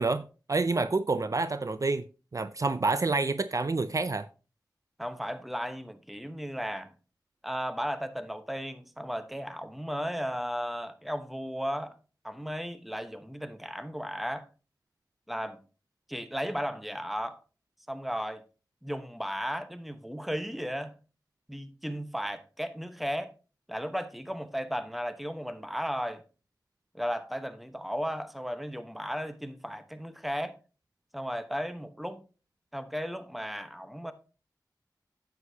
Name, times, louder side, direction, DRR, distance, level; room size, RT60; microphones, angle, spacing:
voice 1, 0.0-2.0 2.3-4.3, right 3 dB, 45° right, 0.5 m, -28 dB
voice 2, 5.0-6.9 7.4-12.0 12.2-14.5 15.3-15.6 16.1-17.4 17.9-18.4 18.8-20.9 21.5-23.3 23.7-26.2 26.9-30.6 31.1-32.2 32.7-34.1, equal, ahead, 1.0 m, -35 dB
9.6 x 8.2 x 2.8 m
cardioid pair, 45°, 8 cm